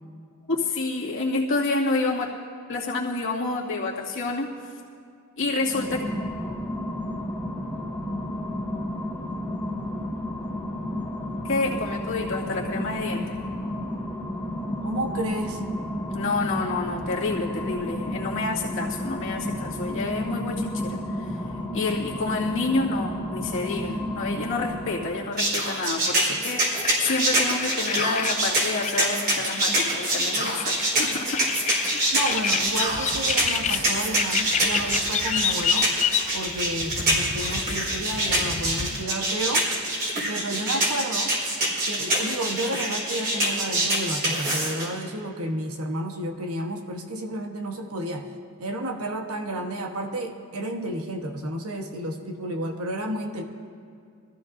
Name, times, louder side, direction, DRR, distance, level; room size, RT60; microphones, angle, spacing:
voice 1, 0.5-2.3 2.7-4.5 5.4-6.0 11.4-13.4 16.1-21.3 21.7-31.5, left 3 dB, 60° left, -5 dB, 2.2 m, -28 dB
sound 1, 5.6-25.3, left 1 dB, 10° left, 1.3 m, -32 dB
voice 2, 14.8-15.6 32.1-35.9 36.3-39.7 40.3-41.4 41.8-48.3 48.6-53.4, right 1 dB, 75° right, 3 dB, 1.2 m, -31 dB
sound 2, 25.4-44.9, right 1 dB, 45° right, 4.2 m, -25 dB
sound 3, 26.8-39.0, left 8 dB, 30° left, 0.4 m, -30 dB
23.5 x 14.5 x 2.6 m, 2.3 s
head